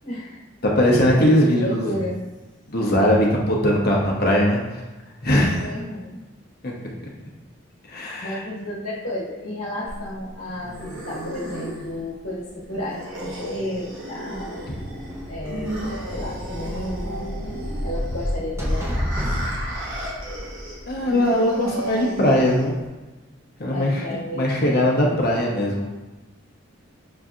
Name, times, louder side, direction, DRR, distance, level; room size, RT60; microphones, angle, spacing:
voice 1, 0.0-0.4 0.7-0.8 1.5-2.2 5.6-6.2 8.2-14.7 15.3-15.8 16.1-17.3 17.8-18.9 23.7-24.7, left 1 dB, 85° left, -8 dB, 1.2 m, -32 dB
voice 2, 0.6-1.9 2.7-4.8 5.2-5.7 6.6-6.7 7.0-7.1 7.9-8.4 20.9-22.8 23.6-24.0 24.3-25.9, left 1 dB, 50° left, -3 dB, 0.8 m, -20 dB
sound 1, 9.9-22.9, right 1 dB, 75° right, 1.1 m, -35 dB
sound 2, 14.5-21.2, equal, 15° right, 0.6 m, -30 dB
6.4 x 2.7 x 2.4 m, 1.1 s
head